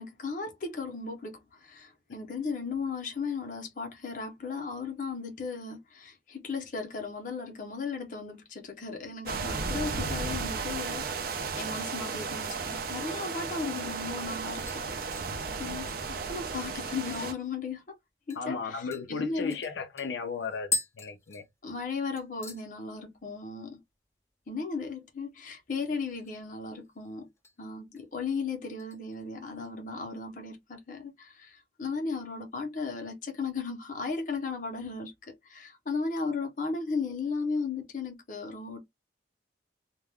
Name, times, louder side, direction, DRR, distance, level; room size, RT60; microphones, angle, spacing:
voice 1, 0.0-14.8 15.6-18.0 18.3-19.6 21.6-23.8 24.5-27.3 27.6-38.8, left 4 dB, 45° left, 0.8 m, -36 dB
sound 1, 9.3-17.3, right 4 dB, 55° right, 0.5 m, -34 dB
sound 2, 14.7-17.5 17.8-17.9 18.3-18.5 18.9-21.9 22.2-22.7 23.0-23.4 23.7-23.8 25.9-26.5 26.8-27.6 28.0-28.2 28.8-29.7 30.1-30.2, left 4 dB, 15° left, 0.4 m, -40 dB
voice 2, 18.4-21.4, left 4 dB, 85° left, 0.5 m, -35 dB
2.3 x 2.2 x 3.3 m
head